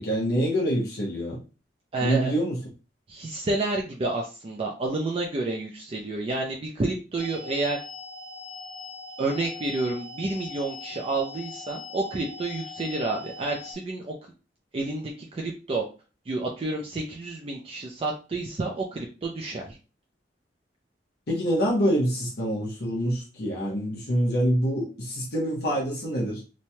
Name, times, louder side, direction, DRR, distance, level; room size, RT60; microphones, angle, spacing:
voice 1, 0.0-1.4 2.0-2.6 21.3-26.4, equal, 60° left, 0.7 m, -26 dB
voice 2, 1.9-2.3 3.1-7.8 9.2-14.1 14.7-15.8 16.3-19.8, right 2 dB, 35° right, 0.4 m, -29 dB
sound 1, 7.2-13.7, left 4 dB, ahead, 0.7 m, -41 dB
3.0 x 2.2 x 2.7 m
head